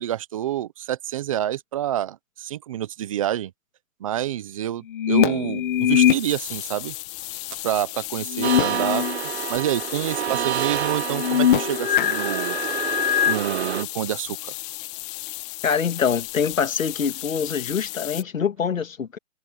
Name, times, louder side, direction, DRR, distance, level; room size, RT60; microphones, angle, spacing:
voice 1, 0.0-3.5 4.0-6.9 7.6-9.0 9.5-12.6 13.2-14.4, right 12 dB, 25° right, 0.8 m, -27 dB
sound 1, 4.9-6.2 8.3-9.2 9.6-9.7 11.1-13.4, left 10 dB, 40° left, 1.4 m, -22 dB
sound 2, 5.8-18.2, left 21 dB, 25° left, 1.9 m, -35 dB
sound 3, 8.4-13.8, right 10 dB, 55° right, 1.0 m, -28 dB
voice 2, 15.6-19.2, left 6 dB, 90° left, 2.2 m, -24 dB
hypercardioid pair, 160°, 39 cm